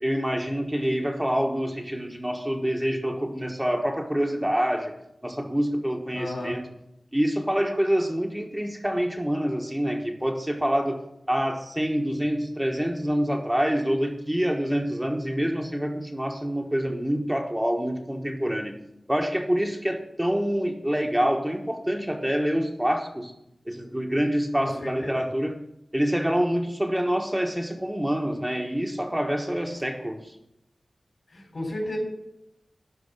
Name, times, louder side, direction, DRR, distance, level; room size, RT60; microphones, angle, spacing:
voice 1, 0.0-4.9 5.2-6.7 7.1-11.0 11.3-18.8 19.1-23.3 23.7-25.6 25.9-30.3, equal, 10° right, 2 dB, 1.2 m, -26 dB
voice 2, 6.1-6.6 24.6-25.2 31.3-32.0, left 1 dB, 60° left, 1 dB, 3.6 m, -33 dB
12.0 x 4.8 x 8.2 m, 0.83 s
wide cardioid pair, 60°, 0 cm